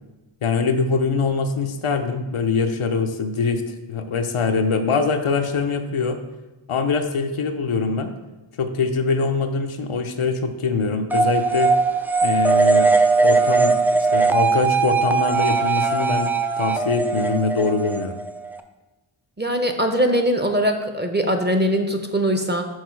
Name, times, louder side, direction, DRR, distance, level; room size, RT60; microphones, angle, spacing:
voice 1, 0.4-6.2 6.7-8.1 8.6-11.7 12.2-16.3 16.6-18.2, left 4 dB, 80° left, 6 dB, 0.7 m, -23 dB
sound 1, 11.1-18.6, right 4 dB, 5° right, 0.4 m, -19 dB
voice 2, 19.4-22.7, equal, 20° right, 5 dB, 0.8 m, -21 dB
6.4 x 4.5 x 4.6 m, 1.1 s
wide cardioid pair, 50°, 50 cm